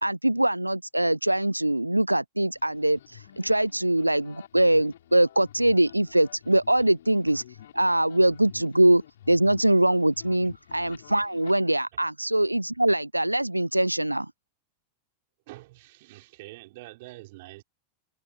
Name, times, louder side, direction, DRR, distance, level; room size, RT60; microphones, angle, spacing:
voice 1, 0.0-7.4 7.7-9.0 9.3-14.3, right 1 dB, 85° right, 0.4 m, -23 dB
sound 1, 2.5-11.5, left 11 dB, 60° left, 4.2 m, -50 dB
voice 2, 15.5-17.6, right 20 dB, 50° right, 5.8 m, -46 dB
figure-of-eight pair, 90°, 0 cm